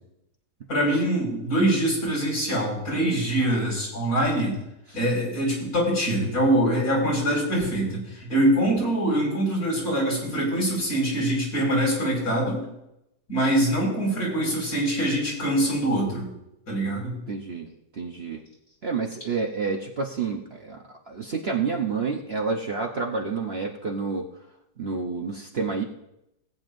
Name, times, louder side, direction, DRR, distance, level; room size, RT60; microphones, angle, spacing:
voice 1, 0.7-4.5 4.9-12.7 13.3-16.3 16.7-17.2, right 1 dB, 65° left, -4 dB, 5.6 m, -24 dB
voice 2, 17.3-17.7 18.0-18.4 18.8-20.8 21.1-24.3 24.8-25.8, right 4 dB, 45° right, 1 dB, 1.0 m, -29 dB
18.5 x 9.3 x 2.6 m, 0.85 s
omnidirectional pair, 1.7 m